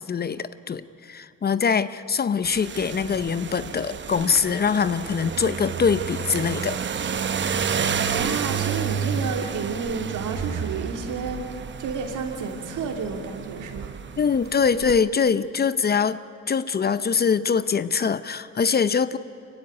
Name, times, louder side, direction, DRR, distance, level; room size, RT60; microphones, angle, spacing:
voice 1, 0.0-6.8 14.2-16.2 16.5-19.2, left 6 dB, 30° left, 15 dB, 0.6 m, -23 dB
sound 1, 2.4-15.0, right 6 dB, 35° right, 0.9 m, -30 dB
voice 2, 8.1-11.4 11.8-14.0, right 5 dB, 75° right, 4 dB, 2.9 m, -31 dB
25.0 x 15.5 x 9.6 m, 2.8 s
cardioid pair, 115°, 31 cm